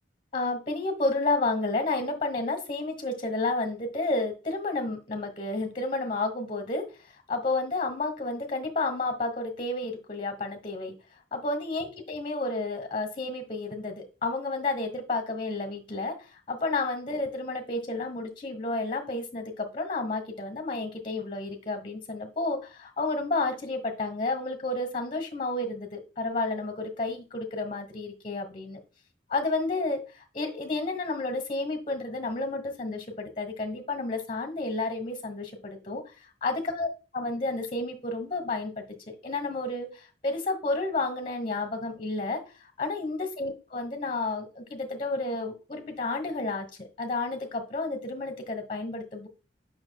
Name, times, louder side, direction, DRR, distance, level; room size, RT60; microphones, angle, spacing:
voice 1, 0.3-6.9 7.3-10.9 11.3-28.8 29.3-36.0 36.4-42.4 42.8-46.7 47.0-49.3, left 2 dB, 30° left, 5 dB, 1.3 m, -31 dB
8.9 x 5.8 x 2.3 m, 0.32 s
head